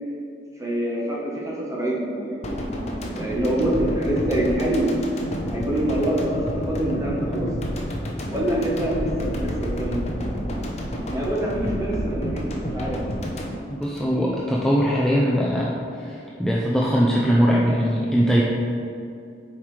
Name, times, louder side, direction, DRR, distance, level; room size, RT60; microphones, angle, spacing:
voice 1, 0.6-2.6 3.2-4.9 5.5-7.5 8.3-10.0 11.1-13.1, right 1 dB, 15° right, -4 dB, 1.1 m, -25 dB
sound 1, 2.4-14.6 14.9-15.1, equal, 35° left, 0.7 m, -30 dB
voice 2, 13.7-18.4, equal, 5° left, -5 dB, 0.4 m, -21 dB
7.1 x 4.7 x 3.2 m, 2.5 s
head